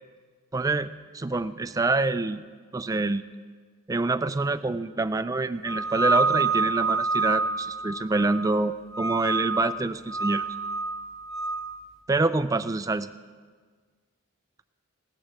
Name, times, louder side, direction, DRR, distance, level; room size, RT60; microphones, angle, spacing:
voice 1, 0.5-2.4 2.7-3.2 3.9-10.4 12.1-13.1, right 3 dB, 15° right, 11 dB, 0.3 m, -26 dB
sound 1, 5.7-8.6 8.9-9.7 10.1-11.6, right 3 dB, 5° left, 1.6 m, -27 dB
17.5 x 14.0 x 3.1 m, 1.5 s
head